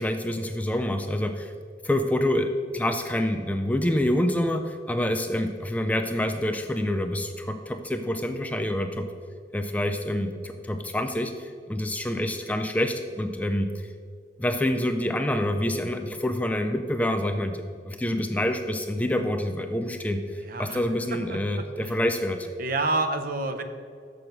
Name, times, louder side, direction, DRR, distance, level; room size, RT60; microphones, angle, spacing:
voice 1, 0.0-1.5 1.8-9.1 9.5-13.9 14.4-22.5, left 1 dB, 10° left, 6 dB, 0.3 m, -27 dB
voice 2, 20.4-20.8 21.1-22.0 22.6-23.6, right 2 dB, 50° right, 7 dB, 0.6 m, -29 dB
6.6 x 6.2 x 5.8 m, 2.1 s
head